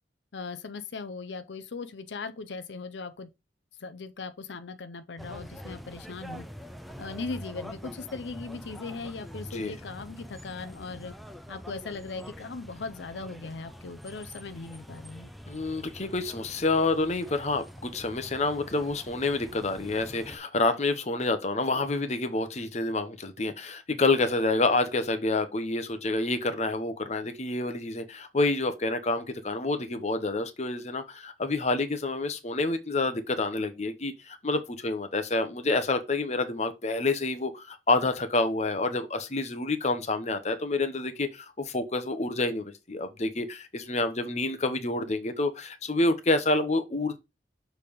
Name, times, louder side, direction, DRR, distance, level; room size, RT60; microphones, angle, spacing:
voice 1, 0.3-3.3 3.8-6.5 7.0-11.1 11.5-15.3, left 4 dB, 90° left, 0.6 m, -39 dB
sound 1, 5.2-20.4, equal, ahead, 0.5 m, -45 dB
voice 2, 15.5-47.2, left 2 dB, 40° left, 0.9 m, -28 dB
6.7 x 3.4 x 5.2 m
head